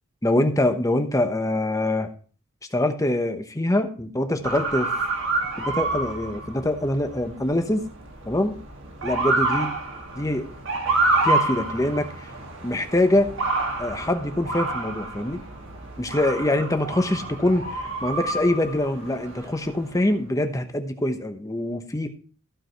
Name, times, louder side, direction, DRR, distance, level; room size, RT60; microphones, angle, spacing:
voice 1, 0.2-2.1 2.7-4.9 5.6-7.9 8.2-8.5 9.0-9.7 10.2-10.5 11.2-12.3 12.6-13.3 13.8-15.4 16.0-22.1, left 1 dB, 15° left, 7 dB, 1.0 m, -24 dB
Motor vehicle (road) / Siren, 4.4-20.0, right 2 dB, 60° right, 1.7 m, -28 dB
14.5 x 4.9 x 4.6 m, 0.41 s
head